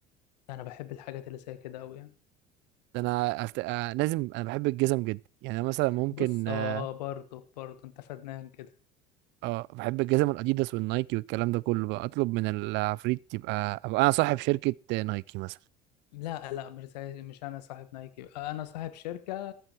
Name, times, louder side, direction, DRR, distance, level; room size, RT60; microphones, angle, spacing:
voice 1, 0.5-2.1 6.1-8.7 16.1-19.5, left 13 dB, 90° left, 1.2 m, -39 dB
voice 2, 2.9-6.8 9.4-15.5, right 21 dB, 60° right, 0.4 m, -28 dB
14.0 x 8.0 x 4.5 m
supercardioid pair, 85°, 20 cm